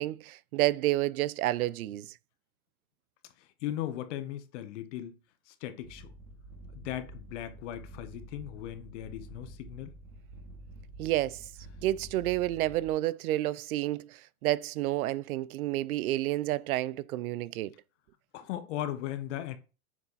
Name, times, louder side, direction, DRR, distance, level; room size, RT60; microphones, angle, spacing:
voice 1, 0.0-2.1 11.0-11.4 11.8-17.7, right 15 dB, 85° right, 0.6 m, -30 dB
voice 2, 3.6-5.1 5.5-6.1 6.7-9.9 18.3-19.6, left 12 dB, 55° left, 1.3 m, -37 dB
sound 1, 5.8-12.9, right 1 dB, 65° right, 2.3 m, -49 dB
7.4 x 4.7 x 4.1 m
supercardioid pair, 150°, 42 cm